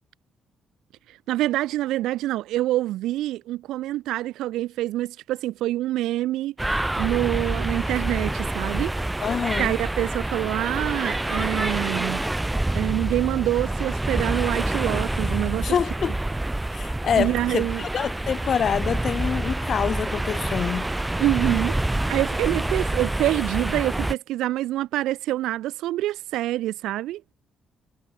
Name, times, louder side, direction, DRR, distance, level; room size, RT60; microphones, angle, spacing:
voice 1, 1.3-6.5 7.0-9.0 9.6-12.2 12.7-15.8 17.2-17.8 21.2-21.8 22.1-27.2, right 15 dB, 90° right, 0.6 m, -26 dB
sound 1, 6.6-24.1, right 1 dB, 10° right, 1.2 m, -27 dB
voice 2, 9.2-9.7 15.6-16.2 16.7-20.9, left 8 dB, 55° left, 1.2 m, -26 dB
cardioid pair, 85°, 0 cm